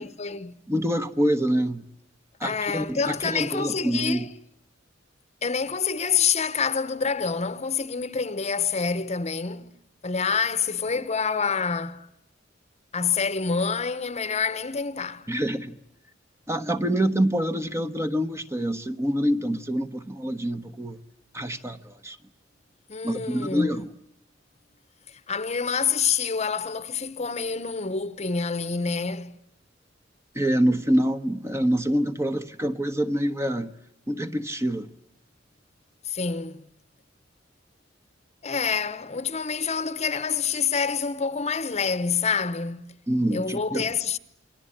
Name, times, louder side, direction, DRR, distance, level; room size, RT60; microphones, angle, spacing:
voice 1, 0.0-0.6 2.4-4.3 5.4-9.7 10.0-12.1 12.9-15.3 22.9-23.8 25.1-29.4 36.0-36.6 38.4-43.0 43.3-44.2, left 5 dB, 35° left, 1.1 m, -27 dB
voice 2, 0.7-1.8 2.4-4.3 15.3-15.8 16.5-21.0 21.3-22.2 23.0-23.9 30.3-33.7 34.1-34.9 43.1-43.9, equal, 15° right, 1.2 m, -26 dB
29.0 x 22.5 x 8.8 m
head